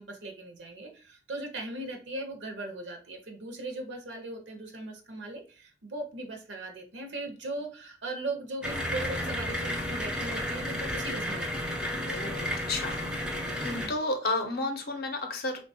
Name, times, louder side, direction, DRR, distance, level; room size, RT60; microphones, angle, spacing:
voice 1, 0.0-11.8 13.8-13.9, right 2 dB, 70° right, 4 dB, 0.5 m, -39 dB
sound 1, 8.6-13.9, equal, 5° right, 0.4 m, -32 dB
voice 2, 12.0-13.1 13.4-15.7, left 2 dB, 55° left, 5 dB, 0.6 m, -32 dB
3.3 x 2.2 x 2.6 m, 0.38 s
head